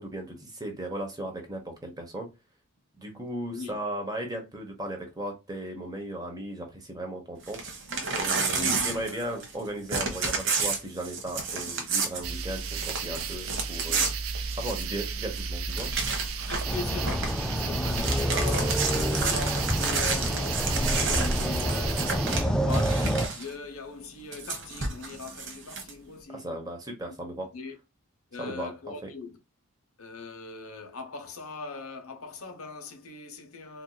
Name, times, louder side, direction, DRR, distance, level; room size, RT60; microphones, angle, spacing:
voice 1, 0.0-2.3 3.0-7.6 8.2-14.1 14.6-15.9 26.3-27.5 28.4-28.7 29.0-29.1, right 1 dB, 15° right, 1.0 m, -36 dB
Crumpling crinkling / Tearing, 7.4-9.6 9.9-15.0 15.4-15.5 15.7-16.7 17.0-17.4 17.8-23.5 24.3-25.9, right 4 dB, 60° right, 1.1 m, -31 dB
voice 2, 7.9-9.4 10.0-10.2 13.9-14.1 16.4-26.5 27.5-27.8 28.3-29.4 30.0-33.8, left 4 dB, 85° left, 0.9 m, -40 dB
sound 1, 12.2-22.4, right 4 dB, 75° right, 0.5 m, -34 dB
sound 2, 16.7-23.3, equal, 5° left, 0.4 m, -28 dB
4.5 x 2.7 x 2.3 m
head